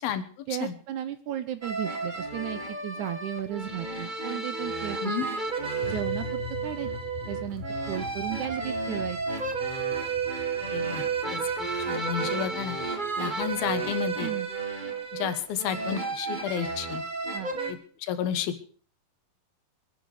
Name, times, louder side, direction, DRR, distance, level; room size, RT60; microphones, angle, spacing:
voice 1, 0.5-5.1 5.9-6.9 7.3-9.2 14.2-14.5 17.3-17.5, right 12 dB, 70° right, 12 dB, 1.9 m, -34 dB
sound 1, 1.6-17.7, right 4 dB, 25° right, 0.9 m, -32 dB
sound 2, 5.8-14.3, left 11 dB, 70° left, 2.1 m, -43 dB
voice 2, 10.7-11.0 11.3-11.4 11.9-12.8 13.2-14.3 15.1-17.0 18.0-18.7, left 9 dB, 85° left, 11 dB, 3.2 m, -31 dB
23.5 x 10.5 x 4.9 m, 0.42 s
omnidirectional pair, 4.1 m